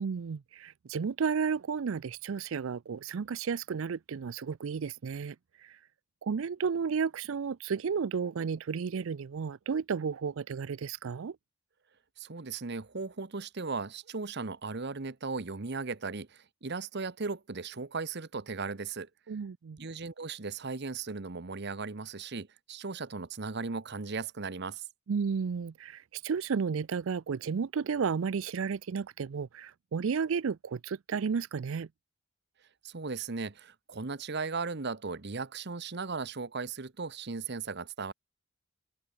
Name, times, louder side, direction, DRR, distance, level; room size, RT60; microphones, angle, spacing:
voice 1, 0.0-5.9 6.2-11.4 19.3-19.8 25.1-31.9, right 6 dB, 70° right, 0.4 m, -33 dB
voice 2, 12.2-19.1 19.8-24.8 32.8-38.1, right 4 dB, 55° right, 0.9 m, -37 dB
open air
head